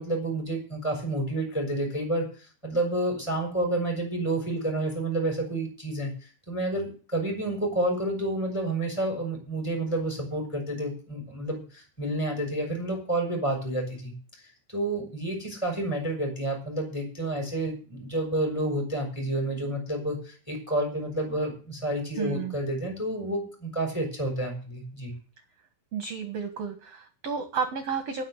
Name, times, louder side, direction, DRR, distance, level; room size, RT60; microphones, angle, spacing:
voice 1, 0.0-14.1 14.7-25.2, right 1 dB, 5° left, 0 dB, 6.5 m, -30 dB
voice 2, 22.2-22.5 25.9-28.2, right 6 dB, 55° right, 8 dB, 2.0 m, -32 dB
19.0 x 6.3 x 8.1 m, 0.39 s
omnidirectional pair, 4.5 m